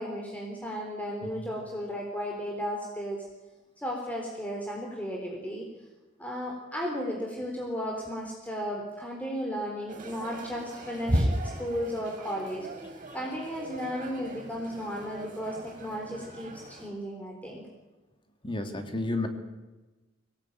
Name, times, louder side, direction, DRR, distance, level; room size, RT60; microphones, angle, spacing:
voice 1, 0.0-3.3 3.8-5.7 6.2-11.3 11.6-12.7 13.1-17.6, equal, 10° left, -1 dB, 3.9 m, -34 dB
sound 1, 9.9-16.9, equal, 40° right, 5.7 m, -35 dB
voice 2, 18.4-19.3, left 2 dB, 25° left, 6 dB, 2.5 m, -31 dB
25.0 x 18.0 x 9.1 m, 1.2 s
head